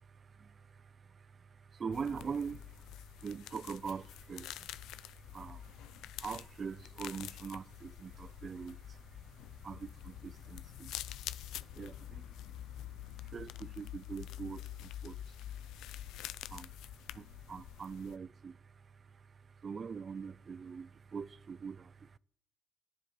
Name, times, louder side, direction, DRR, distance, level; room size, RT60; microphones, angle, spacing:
voice 1, 0.4-0.9 1.7-4.9 5.2-5.7 6.2-9.0 9.6-11.0 11.7-12.3 13.2-15.2 16.5-16.7 17.1-18.6 19.6-22.2, right 6 dB, 40° right, 0.3 m, -43 dB
sound 1, 1.9-18.2, left 13 dB, 90° left, 0.3 m, -47 dB
10.5 x 5.0 x 8.3 m
cardioid pair, 90°, 0 cm